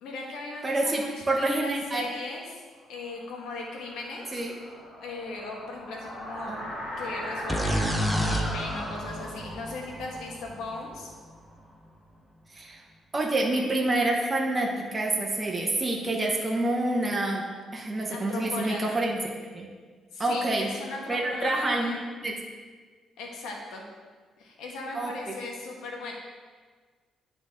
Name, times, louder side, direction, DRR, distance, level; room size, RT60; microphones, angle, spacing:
voice 1, 0.0-2.6 2.9-4.4 5.0-11.1 18.1-19.0 20.1-22.0 23.2-23.8 24.4-26.1, left 3 dB, 85° left, 0 dB, 1.3 m, -38 dB
voice 2, 0.6-2.0 4.3-4.5 6.5-6.6 12.5-12.8 13.1-17.4 17.7-19.2 19.5-19.7 20.2-20.7 21.1-21.9 22.2-22.3 24.9-25.3, right 2 dB, 25° right, -1 dB, 1.0 m, -27 dB
sound 1, 3.0-11.7, equal, 65° left, 2.0 m, -39 dB
sound 2, 7.5-11.2, equal, 5° left, 0.8 m, -30 dB
10.5 x 4.0 x 3.6 m, 1.5 s
cardioid pair, 90°, 0 cm